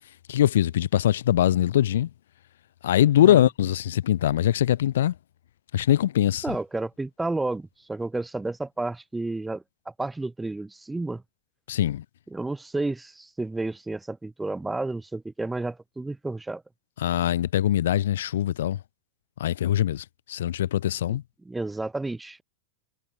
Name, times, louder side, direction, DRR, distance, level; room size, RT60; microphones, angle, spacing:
voice 1, 0.3-2.1 2.8-5.1 5.7-6.4 11.7-12.0 17.0-18.8 19.4-21.2, left 11 dB, 75° left, 1.6 m, -22 dB
voice 2, 6.4-11.2 12.3-16.6 21.1-21.2 21.4-22.4, right 2 dB, 10° right, 4.5 m, -31 dB
hypercardioid pair, 100°, 0 cm